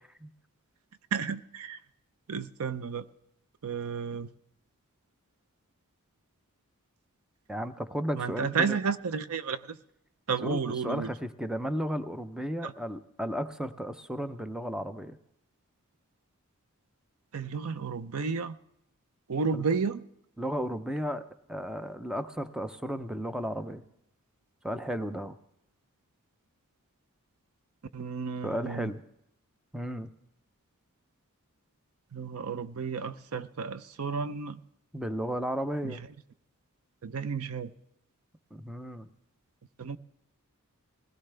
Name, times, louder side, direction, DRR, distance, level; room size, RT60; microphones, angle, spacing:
voice 1, 1.1-1.8 2.3-3.1 3.6-4.3 8.1-9.8 10.3-11.1 12.6-12.7 17.3-18.6 19.3-20.0 27.9-28.9 32.1-34.6 35.8-36.1 37.0-37.7 39.8-40.0, right 5 dB, 70° right, 14 dB, 0.6 m, -32 dB
voice 2, 7.5-8.8 10.4-15.2 19.5-19.6 20.4-21.2 21.5-23.8 24.6-25.3 28.4-29.0 29.7-30.1 34.9-36.0 38.5-39.1, equal, 5° right, 10 dB, 0.6 m, -34 dB
20.0 x 16.5 x 3.3 m, 0.76 s
head